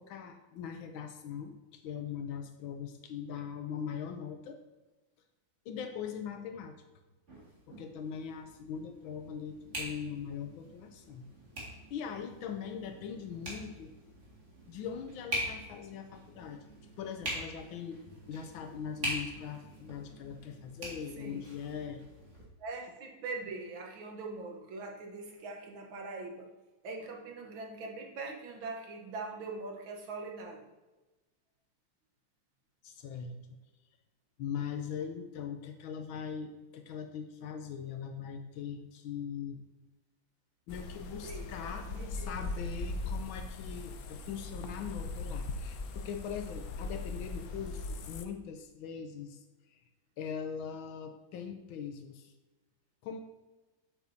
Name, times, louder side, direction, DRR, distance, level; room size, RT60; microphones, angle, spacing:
voice 1, 0.0-4.6 5.6-6.7 7.7-11.2 11.9-13.9 14.7-16.6 17.0-18.0 18.3-22.0 32.8-33.4 34.4-39.6 40.7-49.4 49.7-49.8 50.2-52.3 53.0-53.2, left 7 dB, 85° left, 6 dB, 1.5 m, -41 dB
sound 1, 7.3-22.4, right 1 dB, 35° right, 2.4 m, -43 dB
voice 2, 22.6-26.5 26.8-30.7 41.2-41.5 41.9-42.5, right 3 dB, 80° right, 1 dB, 2.0 m, -42 dB
sound 2, 40.7-48.3, left 3 dB, 70° left, 0.9 m, -39 dB
8.3 x 8.0 x 2.8 m, 1.1 s
omnidirectional pair, 2.2 m